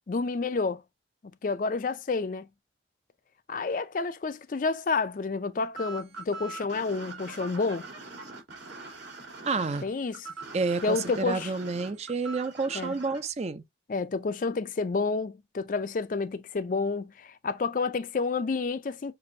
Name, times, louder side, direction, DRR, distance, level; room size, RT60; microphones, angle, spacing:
voice 1, 0.1-0.8 1.4-2.5 3.5-7.9 9.8-10.3 10.8-11.5 12.7-12.9 13.9-19.1, left 4 dB, 45° left, 0.4 m, -29 dB
sound 1, 5.8-13.2, right 3 dB, 80° right, 2.8 m, -42 dB
voice 2, 9.4-9.9 10.5-13.6, right 4 dB, 35° right, 0.4 m, -29 dB
6.8 x 2.6 x 2.6 m
head